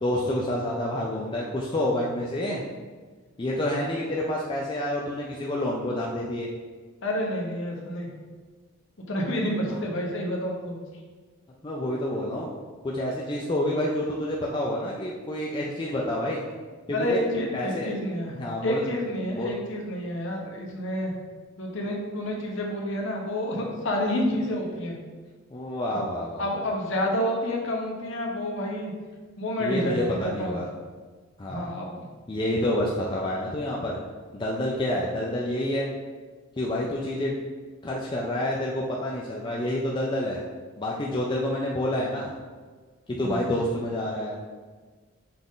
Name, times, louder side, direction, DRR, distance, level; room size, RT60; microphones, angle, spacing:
voice 1, 0.0-2.6 3.4-6.5 11.6-12.5 12.8-16.4 16.9-17.2 17.5-17.9 18.3-18.8 19.2-19.5 25.5-26.6 29.6-30.7 31.4-31.7 32.3-34.0 34.3-35.9 36.6-37.4 37.8-40.4 40.8-42.3 43.1-44.4, left 1 dB, 20° left, -4 dB, 0.3 m, -28 dB
voice 2, 7.0-8.1 9.1-10.8 16.9-18.3 18.6-21.1 21.6-25.0 26.4-28.9 29.4-30.6 31.5-32.1 43.2-43.4, left 1 dB, 55° left, -1 dB, 0.8 m, -29 dB
5.8 x 2.5 x 3.6 m, 1.4 s
head